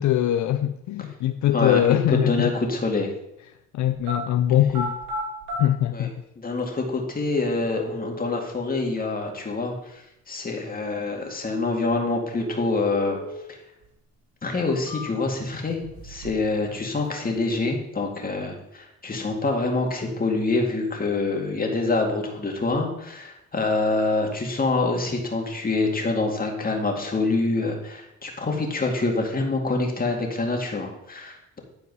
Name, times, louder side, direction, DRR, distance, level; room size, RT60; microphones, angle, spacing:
voice 1, 0.0-2.5 3.7-5.0 5.6-6.1, left 12 dB, 75° left, 0.5 m, -22 dB
voice 2, 1.5-3.1 5.9-6.1 6.4-10.0 10.3-13.2 14.4-31.6, left 3 dB, 30° left, 2.2 m, -26 dB
sound 1, 3.9-4.2 4.6-5.6 6.6-6.7 7.4-8.4 12.4-13.4 13.8-13.9 14.5-15.4 15.8-16.5 16.8-17.4, equal, 80° right, 2.5 m, -35 dB
11.0 x 4.6 x 5.4 m
cardioid pair, 90°, 30 cm